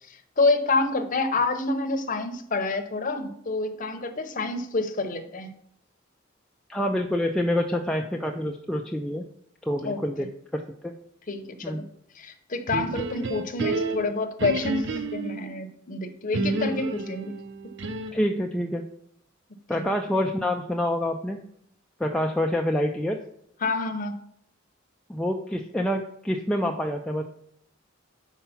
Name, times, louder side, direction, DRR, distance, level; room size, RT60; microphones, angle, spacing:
voice 1, 0.1-5.5 9.8-10.0 11.3-11.8 12.2-17.3 19.7-19.8 23.6-24.1, left 3 dB, 40° left, 6 dB, 0.8 m, -28 dB
voice 2, 6.7-9.2 9.6-10.3 10.5-10.9 11.6-11.8 18.1-18.8 19.7-21.4 22.0-23.2 25.1-27.2, left 1 dB, 5° left, 1 dB, 0.4 m, -27 dB
sound 1, 12.7-15.5 16.3-18.3, right 2 dB, 60° right, 0.6 m, -30 dB
5.6 x 4.7 x 5.7 m, 0.70 s
head